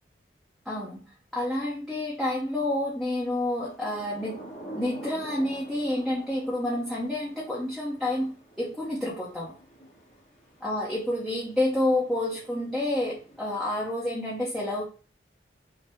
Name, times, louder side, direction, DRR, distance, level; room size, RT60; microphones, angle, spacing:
voice 1, 0.7-1.0 1.3-4.5 4.7-9.5 10.6-14.8, left 1 dB, ahead, -7 dB, 0.8 m, -29 dB
Thunder / Rain, 3.5-14.1, right 1 dB, 40° left, 1.5 m, -48 dB
5.5 x 2.1 x 3.4 m, 0.35 s
head